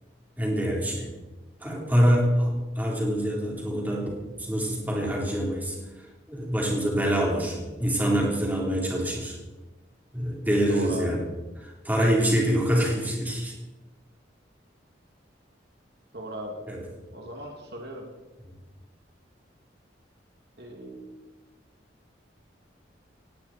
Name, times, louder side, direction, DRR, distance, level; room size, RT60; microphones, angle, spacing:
voice 1, 0.4-1.1 1.6-5.8 6.3-9.3 10.1-11.2 11.6-13.5 16.7-16.8, equal, 10° right, -2 dB, 3.9 m, -25 dB
voice 2, 10.7-11.2 16.1-16.6 17.1-18.1 20.6-21.2, right 1 dB, 60° right, 1 dB, 2.5 m, -38 dB
18.5 x 17.5 x 4.4 m, 1.1 s
head